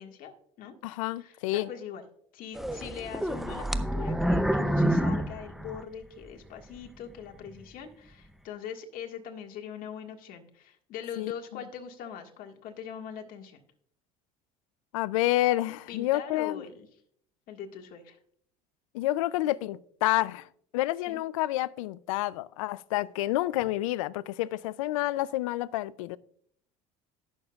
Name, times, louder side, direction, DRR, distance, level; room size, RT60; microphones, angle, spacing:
voice 1, 0.0-0.8 1.2-2.0 2.3-13.6 15.9-16.9 17.5-18.2 21.1-21.2, left 8 dB, 60° left, 1.7 m, -42 dB
voice 2, 0.8-1.7 11.2-11.3 14.9-16.6 18.9-20.5 20.7-26.2, left 16 dB, 90° left, 0.4 m, -29 dB
sound 1, 2.5-6.3 6.8-6.9 7.5-7.6, right 1 dB, ahead, 0.6 m, -28 dB
18.5 x 6.6 x 2.4 m
supercardioid pair, 90°, 16 cm